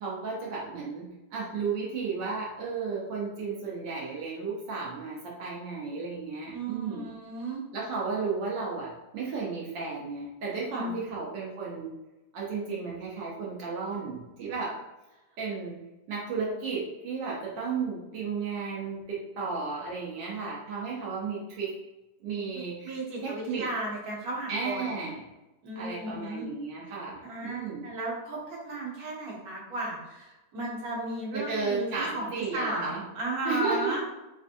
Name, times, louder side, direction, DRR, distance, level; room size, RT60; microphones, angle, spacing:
voice 1, 0.0-7.1 7.7-11.9 12.3-14.8 15.4-15.8 16.1-21.7 22.2-23.7 24.5-25.2 25.8-27.9 31.3-33.0 33.4-34.0, right 4 dB, 80° right, -5 dB, 1.4 m, -33 dB
voice 2, 6.5-7.7 10.7-11.0 22.5-25.0 25.6-26.5 27.2-31.9 32.1-34.0, right 1 dB, 60° right, -4 dB, 1.4 m, -35 dB
4.3 x 2.5 x 2.5 m, 1.0 s
omnidirectional pair, 1.9 m